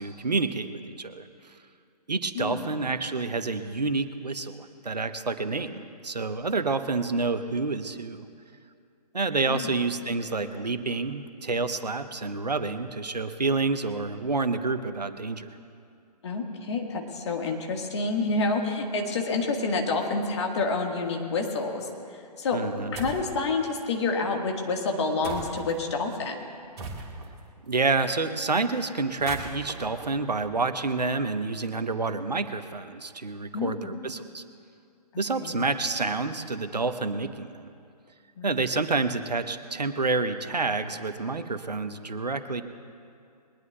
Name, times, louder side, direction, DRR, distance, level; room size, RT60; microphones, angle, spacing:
voice 1, 0.0-1.5 2.1-8.2 9.1-15.5 22.5-22.9 27.7-34.4 35.2-37.7 38.4-42.6, right 3 dB, 75° right, 10 dB, 1.0 m, -28 dB
voice 2, 2.3-2.7 9.5-9.7 16.2-22.6 22.9-26.4 33.5-33.9 35.1-35.5 38.4-38.7, left 3 dB, 40° left, 2 dB, 1.6 m, -28 dB
sound 1, 22.9-23.3 25.2-25.8 26.8-27.4 29.1-31.0, right 3 dB, 40° right, 2.5 m, -39 dB
22.0 x 20.0 x 2.3 m, 2.4 s
figure-of-eight pair, 130°, 21 cm